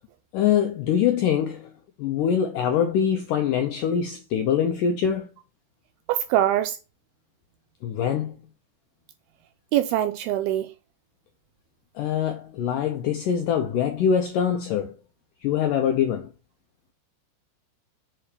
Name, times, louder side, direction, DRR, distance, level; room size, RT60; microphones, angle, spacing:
voice 1, 0.3-1.7 2.0-5.3 7.8-8.5 12.0-14.9 15.4-16.3, left 8 dB, 80° left, 1.9 m, -24 dB
voice 2, 6.1-6.8 9.7-10.7, right 12 dB, 85° right, 2.3 m, -23 dB
8.8 x 4.4 x 6.8 m
omnidirectional pair, 4.9 m